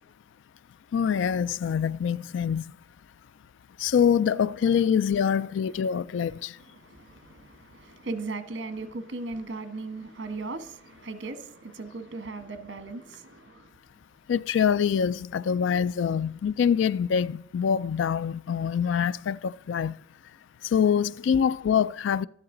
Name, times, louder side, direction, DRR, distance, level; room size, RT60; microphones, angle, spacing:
voice 1, 0.9-2.6 3.8-6.5 14.3-19.9 20.7-22.3, left 7 dB, 70° left, 0.3 m, -25 dB
voice 2, 6.3-13.7, right 3 dB, 65° right, 1.2 m, -38 dB
12.5 x 11.0 x 3.8 m
head